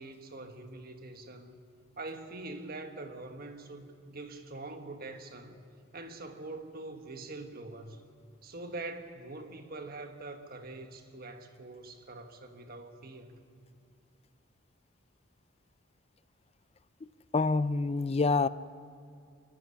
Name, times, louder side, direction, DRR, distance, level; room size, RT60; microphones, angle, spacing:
voice 1, 0.0-1.6 2.0-5.6 5.9-8.0 8.4-13.4, right 2 dB, 45° right, 1.5 m, -44 dB
voice 2, 17.3-18.5, left 3 dB, 30° left, 0.4 m, -26 dB
24.0 x 11.0 x 9.9 m
head